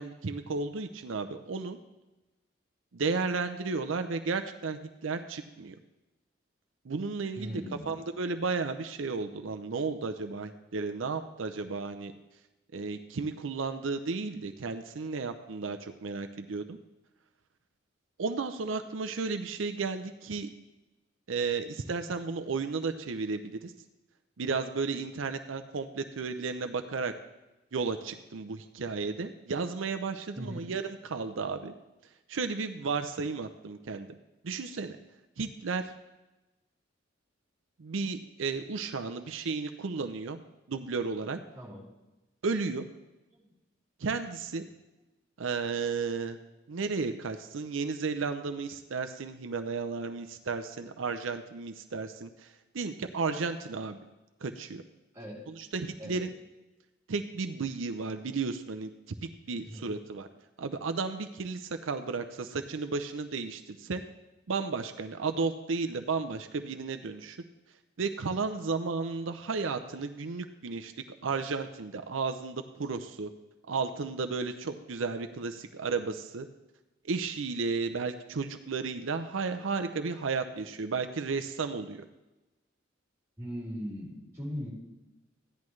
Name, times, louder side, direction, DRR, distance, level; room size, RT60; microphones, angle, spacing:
voice 1, 0.0-1.8 2.9-5.7 6.8-12.1 12.7-16.8 18.2-20.5 21.3-23.7 24.4-27.1 27.7-31.7 32.3-34.1 34.4-35.0 35.4-35.9 37.8-40.4 40.7-41.4 42.4-42.9 44.0-44.6 45.4-46.4 46.7-54.0 54.4-54.8 55.5-56.3 57.1-58.9 59.2-60.3 60.6-64.0 64.5-67.4 68.0-70.9 71.2-73.3 73.7-76.5 77.1-82.0, right 4 dB, 80° right, 8 dB, 0.6 m, -33 dB
voice 2, 7.3-7.9 30.3-30.6 41.5-41.9 43.3-43.5 55.1-55.4 56.0-56.2 59.5-59.8 83.4-84.7, equal, 15° right, -5 dB, 3.7 m, -39 dB
14.5 x 10.5 x 3.2 m, 1.0 s
head